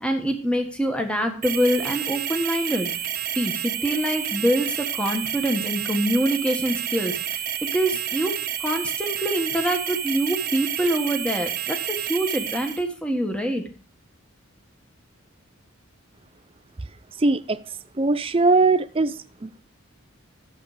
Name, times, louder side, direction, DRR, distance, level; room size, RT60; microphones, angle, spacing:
voice 1, 0.0-2.9 3.4-7.4 7.7-13.6, equal, 5° left, 1.5 m, -25 dB
sound 1, 1.4-12.8, right 10 dB, 45° right, 0.9 m, -29 dB
voice 2, 17.2-17.6 18.0-19.6, right 3 dB, 25° right, 0.5 m, -21 dB
12.5 x 7.6 x 5.0 m
head